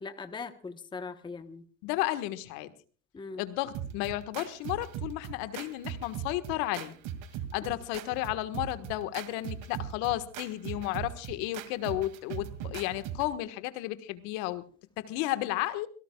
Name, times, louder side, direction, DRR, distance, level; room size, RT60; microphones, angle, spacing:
voice 1, 0.0-1.6 3.1-3.4 7.6-7.7, left 4 dB, 10° left, 9 dB, 1.1 m, -40 dB
voice 2, 1.8-2.7 3.4-7.0 7.5-14.6 15.0-15.9, left 16 dB, 55° left, 12 dB, 1.6 m, -33 dB
sound 1, 3.7-13.3, right 9 dB, 50° right, 2.3 m, -40 dB
26.5 x 17.5 x 2.3 m, 0.40 s
supercardioid pair, 125°, 40 cm